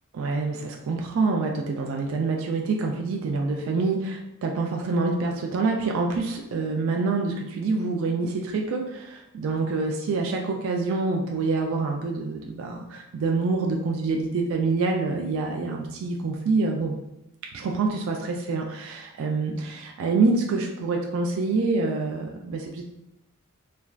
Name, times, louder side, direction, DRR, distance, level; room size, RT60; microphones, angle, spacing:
voice 1, 0.1-16.9 17.5-22.8, right 3 dB, 60° right, 1 dB, 0.3 m, -26 dB
3.2 x 2.3 x 2.4 m, 0.89 s
head